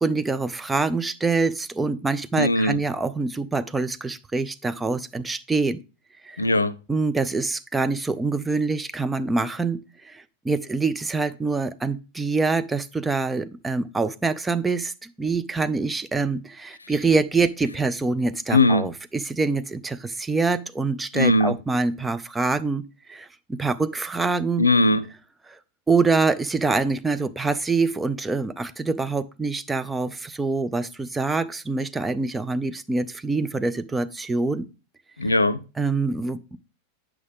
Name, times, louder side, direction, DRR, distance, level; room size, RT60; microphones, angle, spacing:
voice 1, 0.0-5.8 6.2-6.4 6.9-22.8 23.1-24.6 25.5-25.6 25.9-34.7 35.8-36.6, right 3 dB, 10° right, 0.5 m, -25 dB
voice 2, 2.4-2.8 6.4-6.8 16.8-16.9 18.5-18.9 21.1-21.6 24.6-25.1 35.2-35.6, left 2 dB, 80° left, 0.4 m, -19 dB
8.4 x 6.0 x 3.5 m
figure-of-eight pair, 90°, 0 cm